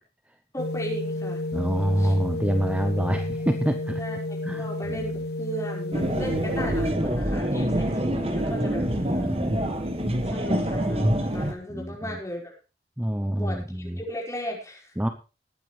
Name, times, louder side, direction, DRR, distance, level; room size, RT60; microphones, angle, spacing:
voice 1, 0.5-1.4 2.0-2.1 4.0-9.3 10.2-12.5 13.4-14.9, equal, 15° left, -1 dB, 5.1 m, -36 dB
sound 1, 0.6-6.9, left 2 dB, 60° left, 0.7 m, -31 dB
voice 2, 1.5-4.0 4.4-5.2 6.0-6.4 8.7-9.5 11.7-12.2 13.0-14.0 15.0-15.1, equal, 5° right, 7 dB, 0.8 m, -27 dB
sound 2, 5.9-11.5, equal, 35° right, 2.0 m, -26 dB
20.0 x 9.3 x 3.4 m, 0.32 s
head